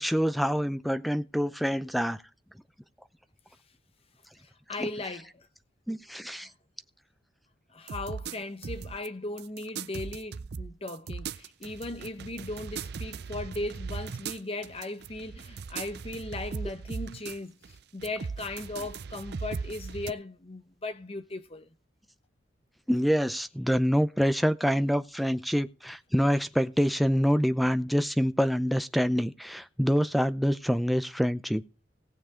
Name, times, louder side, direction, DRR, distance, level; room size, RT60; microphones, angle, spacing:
voice 1, 0.0-2.2 4.8-4.9 5.9-6.5 22.9-31.6, equal, ahead, 0.5 m, -26 dB
voice 2, 4.4-5.5 6.4-6.5 7.7-21.7, left 2 dB, 30° left, 0.9 m, -38 dB
sound 1, 7.9-9.1 9.4-17.4 17.6-20.1, right 5 dB, 60° right, 0.5 m, -38 dB
18.5 x 7.1 x 3.7 m
head